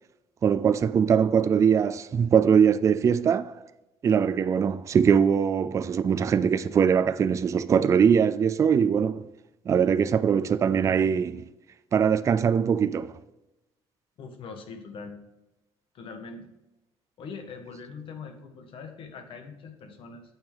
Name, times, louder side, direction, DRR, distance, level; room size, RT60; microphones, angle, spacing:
voice 1, 0.4-3.6 4.0-9.2 9.7-11.5 11.9-13.1, right 7 dB, 30° right, 0.3 m, -22 dB
voice 2, 14.2-15.2 15.9-16.5 17.2-20.2, left 5 dB, 55° left, 1.4 m, -42 dB
9.0 x 6.2 x 3.4 m
cardioid pair, 140°, 11 cm